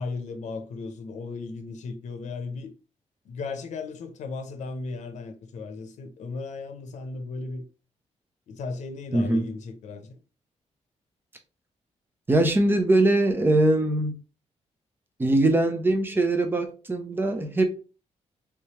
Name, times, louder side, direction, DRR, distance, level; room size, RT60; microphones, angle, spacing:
voice 1, 0.0-2.7 3.2-7.7 8.5-10.2, left 4 dB, 90° left, 0.6 m, -36 dB
voice 2, 9.1-9.5 12.3-14.2 15.2-17.6, right 2 dB, 20° right, 0.6 m, -22 dB
3.4 x 3.2 x 2.9 m
wide cardioid pair, 160°, 12 cm